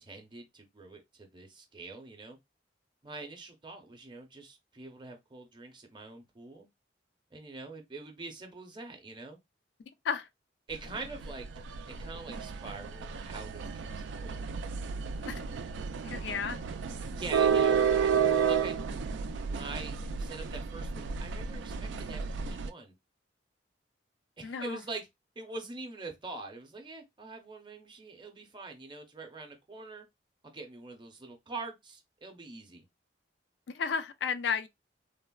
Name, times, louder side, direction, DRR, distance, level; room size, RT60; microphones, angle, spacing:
voice 1, 0.0-2.4 3.0-6.7 7.3-9.4 10.7-11.5 11.9-14.4 17.2-22.9 24.4-25.1 25.4-30.1 30.4-32.8, right 3 dB, 25° right, 0.6 m, -44 dB
sound 1, 10.7-22.7, right 6 dB, 85° right, 0.3 m, -31 dB
voice 2, 16.0-16.6 24.4-24.8 33.7-34.7, left 6 dB, 70° left, 0.3 m, -32 dB
3.3 x 2.0 x 2.2 m
head